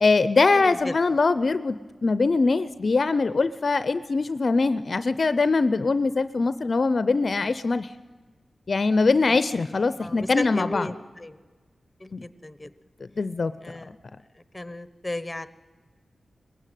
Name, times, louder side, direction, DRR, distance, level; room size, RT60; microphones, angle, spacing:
voice 1, 0.0-1.8 2.0-7.9 8.7-10.9 12.1-12.2 13.2-13.5, left 3 dB, 55° left, 14 dB, 0.5 m, -22 dB
voice 2, 0.5-0.9 9.3-9.4 10.0-11.4 12.0-12.7 13.6-13.9 14.5-15.5, left 1 dB, 15° left, 14 dB, 1.1 m, -34 dB
20.5 x 15.0 x 9.2 m, 1.4 s
cardioid pair, 65°, 0 cm